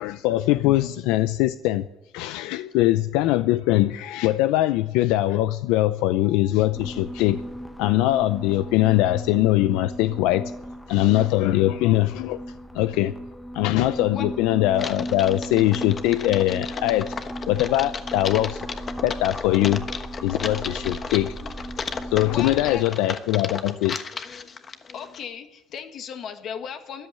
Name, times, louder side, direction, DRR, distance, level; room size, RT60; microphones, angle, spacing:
voice 1, 0.0-1.9 2.1-7.4 7.8-10.5 10.9-12.4 12.7-13.1 13.5-17.1 17.5-18.6 19.0-19.9 20.2-21.3 22.1-24.0, left 15 dB, 90° left, 0.6 m, -22 dB
sound 1, 6.7-22.8, equal, 5° left, 1.0 m, -36 dB
Typing, 14.7-25.2, left 5 dB, 30° left, 1.2 m, -35 dB
voice 2, 22.2-22.8 24.9-27.1, left 7 dB, 50° left, 1.7 m, -36 dB
14.0 x 10.5 x 9.7 m
cardioid pair, 130°, 0 cm